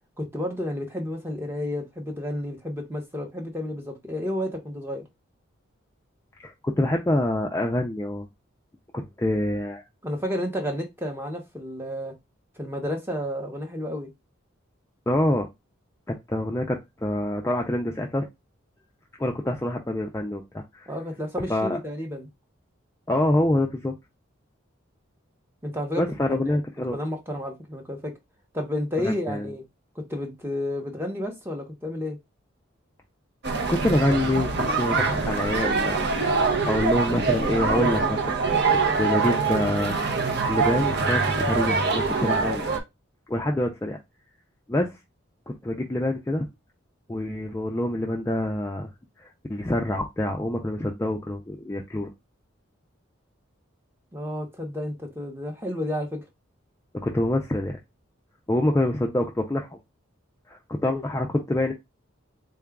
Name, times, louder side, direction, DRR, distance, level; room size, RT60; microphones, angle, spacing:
voice 1, 0.2-5.0 10.0-12.1 12.6-14.1 20.9-22.3 25.6-26.0 26.3-26.6 26.9-28.1 28.5-29.6 30.0-32.2 54.1-56.2, left 1 dB, 10° right, 0.7 m, -31 dB
voice 2, 6.4-8.3 8.9-9.8 15.1-15.5 16.1-18.2 19.2-20.9 21.5-21.8 23.1-23.9 26.0-27.0 29.0-29.5 33.7-38.4 38.7-40.0 40.5-42.6 43.3-44.0 44.7-45.0 45.6-46.5 47.1-48.9 49.2-52.1 56.9-57.8 58.5-59.8 60.5-61.7, left 1 dB, 15° left, 0.3 m, -26 dB
sound 1, 33.4-42.8, right 4 dB, 50° right, 0.7 m, -24 dB
3.8 x 2.3 x 3.5 m
head